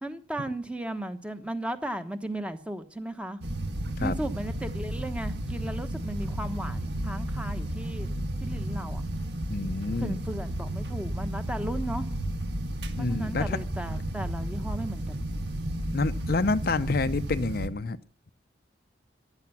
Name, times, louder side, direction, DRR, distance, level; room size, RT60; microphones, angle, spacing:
voice 1, 0.0-3.4 4.0-8.1 8.4-9.0 10.0-12.1 13.0-15.2, right 1 dB, 5° right, 8 dB, 1.1 m, -35 dB
sound 1, 3.4-17.7, right 1 dB, 65° right, 1.6 m, -32 dB
voice 2, 9.5-10.2 13.0-13.6 15.9-18.0, left 3 dB, 55° left, 12 dB, 0.6 m, -28 dB
14.5 x 11.5 x 5.8 m, 0.40 s
head